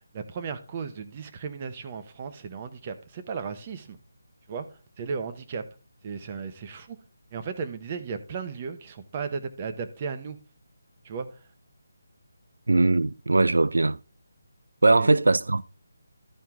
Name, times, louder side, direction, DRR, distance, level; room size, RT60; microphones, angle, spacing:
voice 1, 0.1-4.0 4.5-4.7 5.0-5.6 6.0-7.0 7.3-10.4 11.0-11.3 15.0-15.2, right 5 dB, 25° right, 0.9 m, -35 dB
voice 2, 12.7-14.0 14.8-15.6, right 2 dB, 90° right, 0.3 m, -20 dB
12.5 x 4.5 x 3.6 m
figure-of-eight pair, 170°, 0 cm